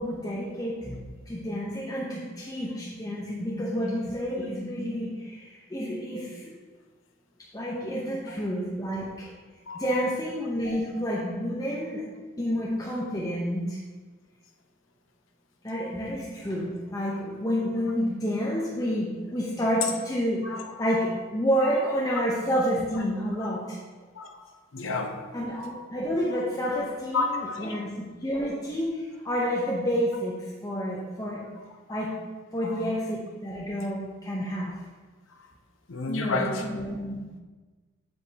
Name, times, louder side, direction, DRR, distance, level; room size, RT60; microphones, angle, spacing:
voice 1, 0.0-6.5 7.5-9.3 9.7-12.0 12.4-13.8 15.6-20.4 20.8-23.8 25.3-27.3 27.6-30.4 30.6-31.4 31.9-32.1 32.5-34.7 36.1-37.2, equal, 20° left, -5 dB, 0.9 m, -29 dB
voice 2, 20.4-20.8 21.6-21.8 23.4-23.5 24.2-25.3 26.3-26.4 27.1-27.8 31.6-31.7 32.6-32.9 35.3-35.4 35.9-36.7, left 3 dB, 90° left, 3 dB, 0.8 m, -31 dB
7.7 x 7.3 x 2.9 m, 1.3 s
head